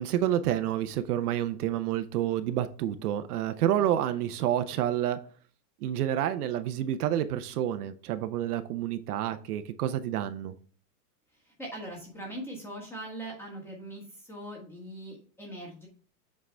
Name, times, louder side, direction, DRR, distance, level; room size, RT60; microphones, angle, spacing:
voice 1, 0.0-5.2 5.8-10.5, right 11 dB, 65° right, 10 dB, 0.7 m, -29 dB
voice 2, 11.3-15.9, right 1 dB, 5° left, -1 dB, 1.5 m, -41 dB
7.5 x 4.7 x 3.4 m, 0.42 s
supercardioid pair, 175°, 49 cm